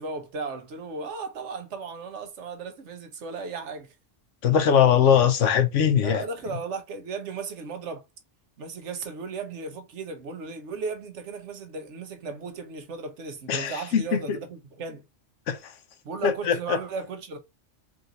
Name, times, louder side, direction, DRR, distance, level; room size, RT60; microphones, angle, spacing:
voice 1, 0.0-3.9 6.0-8.0 8.6-15.1 16.0-17.4, right 4 dB, 65° right, 1.1 m, -36 dB
voice 2, 4.4-6.2 13.5-14.4 15.5-15.7 16.2-16.8, left 8 dB, 75° left, 1.0 m, -21 dB
3.9 x 2.6 x 3.9 m
omnidirectional pair, 1.3 m